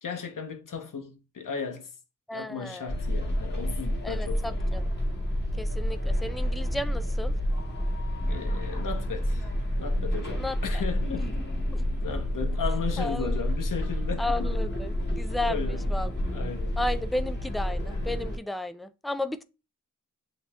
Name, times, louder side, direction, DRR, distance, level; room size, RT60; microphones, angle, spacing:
voice 1, 0.0-1.9 2.3-4.6 8.3-9.5 9.8-11.3 12.0-14.5 15.4-16.8, left 6 dB, 75° left, 0.9 m, -36 dB
voice 2, 2.3-2.9 4.0-4.8 5.6-7.3 10.4-10.6 13.0-13.3 14.2-16.1 16.8-19.4, left 1 dB, ahead, 0.4 m, -33 dB
sound 1, 2.9-18.4, equal, 30° left, 1.9 m, -29 dB
7.9 x 2.9 x 2.3 m
cardioid pair, 45°, 32 cm